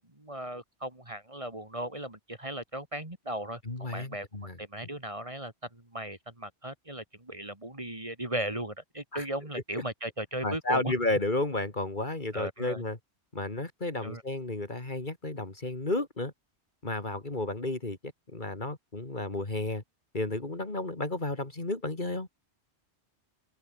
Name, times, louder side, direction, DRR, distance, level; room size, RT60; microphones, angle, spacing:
voice 1, 0.2-4.3 4.6-10.9 12.3-12.8 14.0-14.2, right 1 dB, 30° right, 2.9 m, -37 dB
voice 2, 3.6-4.6 9.1-9.2 9.7-9.8 10.4-13.0 13.3-16.3 16.8-19.8 20.1-22.3, left 2 dB, 40° left, 2.9 m, -32 dB
open air
omnidirectional pair, 1.2 m